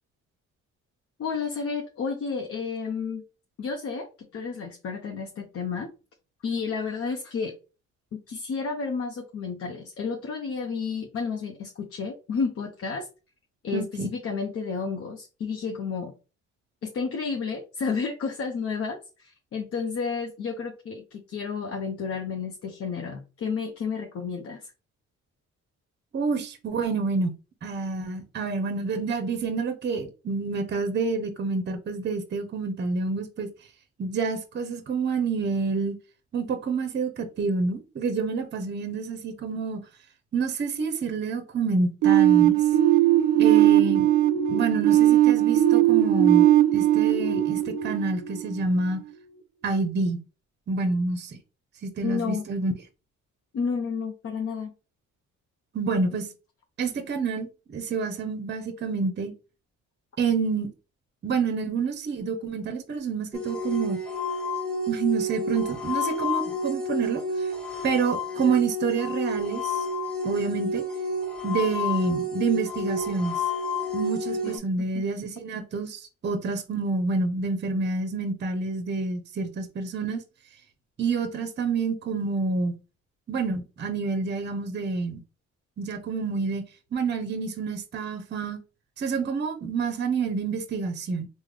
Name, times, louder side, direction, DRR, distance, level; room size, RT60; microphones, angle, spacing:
voice 1, 1.2-3.2 3.6-5.9 6.4-7.5 8.1-13.1 13.6-16.1 16.8-24.7 52.0-52.4 53.5-54.7 74.4-74.6 74.9-75.0, left 5 dB, 50° left, 0.6 m, -31 dB
voice 2, 13.7-14.1 26.1-27.3 27.6-33.5 34.0-36.0 36.3-39.8 40.3-42.6 43.4-44.1 44.5-49.0 49.6-50.2 50.7-51.4 51.8-52.7 55.7-56.3 56.8-59.3 60.2-60.7 61.2-64.0 64.9-67.5 67.8-69.9 70.2-70.8 71.4-73.4 73.9-80.2 81.0-82.8 83.3-85.2 85.8-86.6 86.9-88.6 89.0-91.3, right 4 dB, 35° right, 0.6 m, -28 dB
sound 1, 42.0-48.8, right 13 dB, 90° right, 0.5 m, -19 dB
sound 2, 63.3-74.6, left 1 dB, 5° left, 0.9 m, -30 dB
3.5 x 2.1 x 3.2 m
cardioid pair, 90°, 30 cm